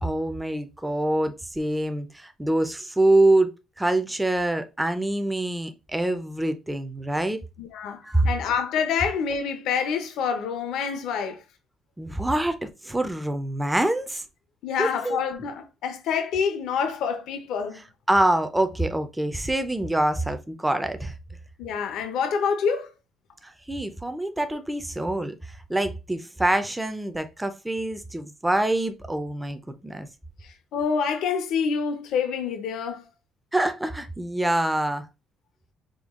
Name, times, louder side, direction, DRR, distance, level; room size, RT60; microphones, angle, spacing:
voice 1, 0.0-7.4 8.0-8.3 12.0-14.2 14.8-15.2 18.1-21.1 23.4-30.1 33.5-35.1, right 1 dB, 5° right, 0.5 m, -25 dB
voice 2, 7.6-11.4 14.6-17.8 21.6-22.9 30.4-33.1, left 6 dB, 70° left, 0.7 m, -27 dB
5.1 x 2.3 x 3.6 m
cardioid pair, 150°, 0 cm